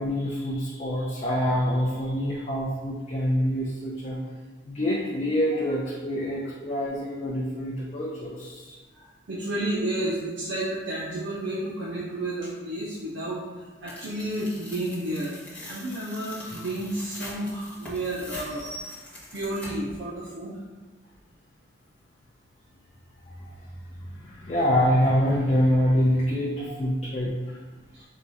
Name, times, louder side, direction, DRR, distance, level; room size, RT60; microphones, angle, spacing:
voice 1, 0.0-4.2 4.7-8.8 24.2-27.6, equal, 35° left, -5 dB, 0.5 m, -26 dB
voice 2, 8.9-15.3 15.6-19.0 19.3-20.6 26.6-26.7, right 1 dB, 70° right, -6 dB, 0.6 m, -31 dB
Tearing, 13.9-20.0, left 1 dB, 10° left, 0.9 m, -43 dB
4.7 x 2.3 x 4.0 m, 1.3 s
head